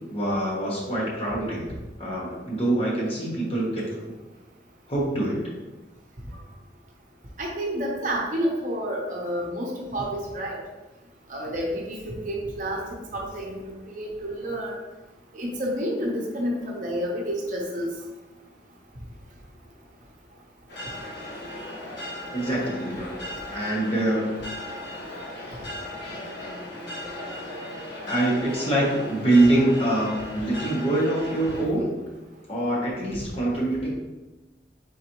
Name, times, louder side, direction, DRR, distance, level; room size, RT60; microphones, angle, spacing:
voice 1, 0.1-1.7 2.0-3.8 4.9-5.4 22.3-23.2 23.5-24.4 28.1-31.9 32.5-33.9, right 1 dB, 30° left, -5 dB, 1.1 m, -24 dB
voice 2, 7.4-10.6 11.3-14.7 15.3-17.9, equal, 45° right, -2 dB, 0.8 m, -29 dB
sound 1, 20.7-31.7, left 1 dB, 70° left, 1.2 m, -37 dB
4.0 x 4.0 x 3.0 m, 1.1 s
head